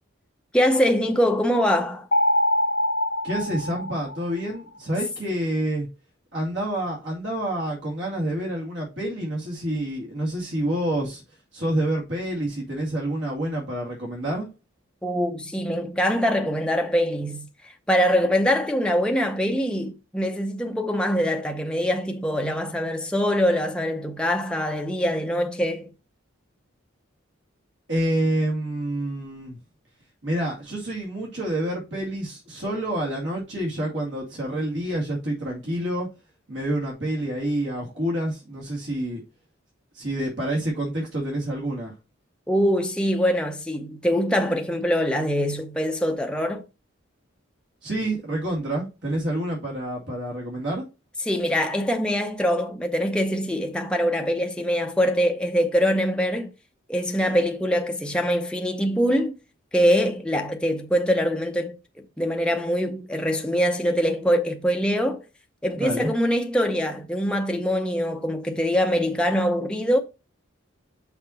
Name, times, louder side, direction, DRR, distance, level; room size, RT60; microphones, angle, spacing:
voice 1, 0.5-2.1 15.0-25.9 42.5-46.6 51.2-56.5 56.9-59.3 59.7-61.8 62.2-65.2 65.6-70.0, equal, 5° left, 0.7 m, -23 dB
sound 1, 2.1-4.6, left 1 dB, 55° left, 0.9 m, -24 dB
voice 2, 3.2-5.9 6.3-11.2 11.5-14.5 27.9-29.6 30.2-36.1 36.5-39.2 39.9-41.9 47.8-50.8 65.8-66.1, right 1 dB, 60° right, 2.3 m, -28 dB
5.9 x 4.3 x 4.2 m
head